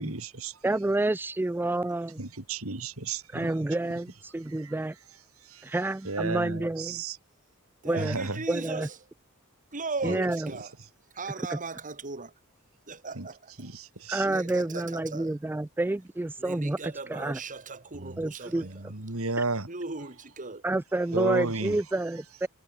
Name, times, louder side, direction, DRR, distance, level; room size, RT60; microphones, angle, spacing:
voice 1, 0.0-0.6 2.2-3.5 4.5-4.7 5.4-5.7 6.0-7.2 7.9-8.4 10.0-10.2 13.1-13.3 13.6-14.3 17.9-19.7 21.1-21.8, right 3 dB, 70° right, 2.6 m, -33 dB
voice 2, 0.6-2.2 3.3-4.9 5.6-7.0 7.9-8.2 8.5-8.9 10.0-10.5 11.5-11.6 14.1-17.4 18.2-18.6 20.6-22.5, right 2 dB, 10° right, 0.3 m, -29 dB
voice 3, 7.8-9.0 9.7-10.7 11.1-12.3 12.9-13.7 14.2-15.3 16.4-18.8 19.7-20.6, right 3 dB, 40° right, 2.3 m, -38 dB
head